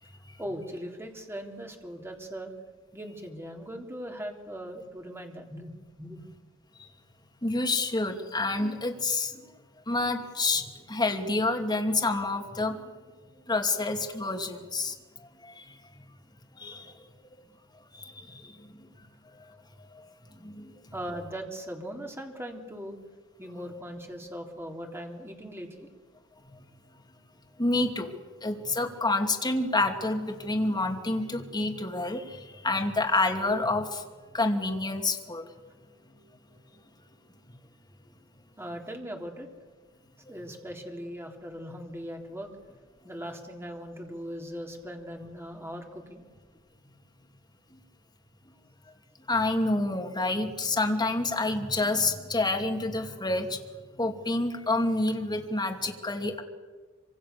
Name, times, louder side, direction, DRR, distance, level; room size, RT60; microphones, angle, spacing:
voice 1, 0.4-2.5 2.9-6.2 20.9-23.0 23.4-25.9 38.6-39.5 40.3-42.5 43.0-46.3, equal, 10° right, 2 dB, 3.5 m, -39 dB
voice 2, 7.4-9.3 9.9-12.8 13.5-14.9 15.4-15.6 16.6-16.9 18.0-18.1 18.4-18.5 19.4-19.6 19.9-20.1 20.4-20.7 27.6-28.1 28.4-34.0 34.3-35.5 49.3-53.6 54.0-56.4, left 2 dB, 20° left, 3 dB, 2.7 m, -28 dB
26.0 x 25.5 x 6.9 m, 1.4 s
head